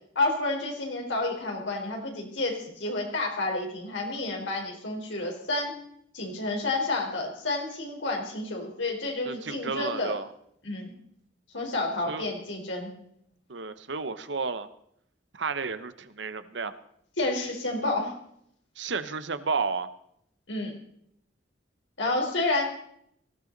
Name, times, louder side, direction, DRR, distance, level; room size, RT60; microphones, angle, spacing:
voice 1, 0.2-5.7 6.1-10.1 10.6-10.9 11.5-12.9 17.2-18.1 20.5-20.7 22.0-22.6, left 2 dB, 80° left, 1 dB, 4.1 m, -30 dB
voice 2, 9.2-10.3 12.1-12.3 13.5-14.7 15.3-16.7 18.8-19.9, right 4 dB, 75° right, 12 dB, 0.9 m, -32 dB
18.5 x 15.0 x 4.0 m, 0.72 s
head